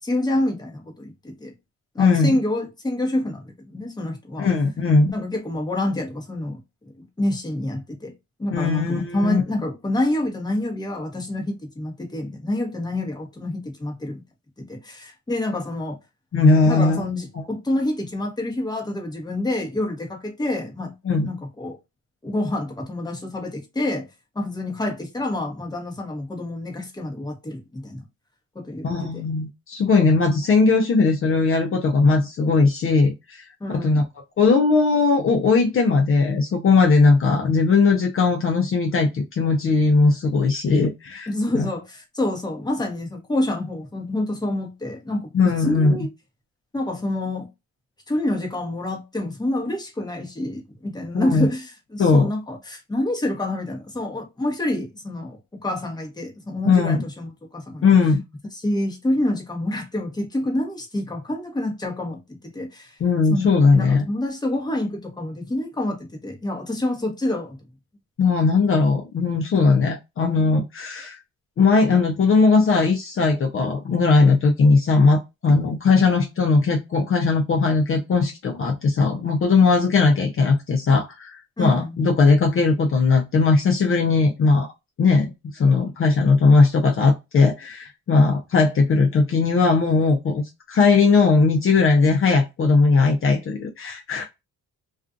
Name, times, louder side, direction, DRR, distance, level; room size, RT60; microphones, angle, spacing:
voice 1, 0.0-1.5 1.9-4.5 5.1-8.1 8.4-14.2 14.6-16.0 16.6-20.9 21.2-21.8 22.2-24.1 24.3-28.0 28.5-29.2 33.6-34.1 41.3-46.1 46.7-47.5 48.1-57.8 58.5-63.0 63.3-63.5 63.7-67.6 81.6-82.0, left 1 dB, 15° left, 1.0 m, -27 dB
voice 2, 2.0-2.3 4.4-5.1 8.5-9.4 16.3-17.1 21.0-21.3 28.8-34.0 34.4-41.3 41.5-41.7 45.3-46.0 51.1-51.5 52.0-52.3 56.6-57.0 57.8-58.2 63.0-64.0 68.2-71.2 71.6-84.7 85.0-85.3 85.5-94.3, left 4 dB, 45° left, 0.6 m, -18 dB
2.4 x 2.4 x 2.5 m
cardioid pair, 90°, 30 cm